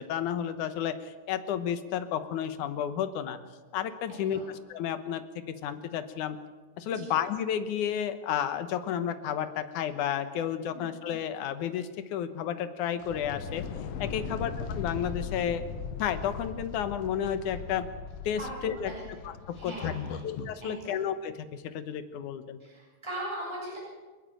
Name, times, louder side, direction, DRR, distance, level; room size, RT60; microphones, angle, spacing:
voice 1, 0.0-3.4 3.7-6.4 6.8-13.7 14.0-15.6 16.0-17.9 18.2-18.9 19.2-19.9 20.2-22.6, left 9 dB, 90° left, 10 dB, 2.6 m, -32 dB
voice 2, 4.1-4.5 6.9-7.1 10.7-10.9 14.2-14.4 18.4-18.5 18.8-19.0 19.5-20.2 20.6-21.0 22.6-23.8, right 1 dB, 10° right, -5 dB, 6.8 m, -40 dB
sound 1, 13.0-20.6, left 6 dB, 65° left, 2.2 m, -38 dB
29.5 x 10.5 x 9.0 m, 1.3 s
omnidirectional pair, 3.4 m